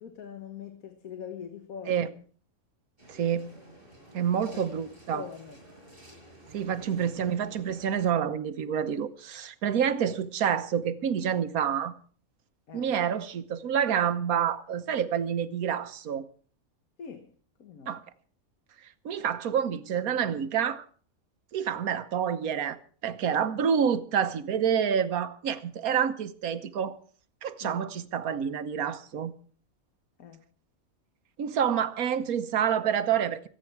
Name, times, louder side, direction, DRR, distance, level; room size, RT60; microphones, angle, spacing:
voice 1, 0.0-2.2 4.5-4.7 5.1-5.6 9.4-9.5 9.8-10.0 12.7-12.9 17.0-17.3 17.6-18.0 27.6-27.9 30.2-30.4, left 7 dB, 80° left, 1.7 m, -43 dB
sound 1, 3.0-8.1, right 1 dB, 40° right, 6.8 m, -52 dB
voice 2, 3.1-3.6 4.1-5.2 6.5-12.0 12.7-16.2 17.9-18.0 19.0-20.8 21.5-22.8 23.0-27.0 27.4-29.3 31.4-33.5, right 8 dB, 85° right, 1.4 m, -28 dB
25.5 x 8.9 x 4.6 m
omnidirectional pair, 1.5 m